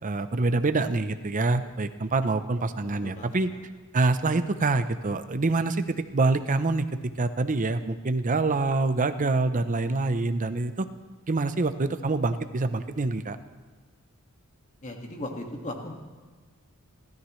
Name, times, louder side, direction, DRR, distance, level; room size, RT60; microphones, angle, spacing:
voice 1, 0.0-3.5 3.9-6.9 7.2-10.9 11.3-13.4, right 3 dB, 35° right, 10 dB, 0.7 m, -26 dB
voice 2, 14.8-15.9, left 1 dB, 35° left, 2 dB, 1.9 m, -36 dB
29.0 x 13.5 x 3.2 m, 1.4 s
head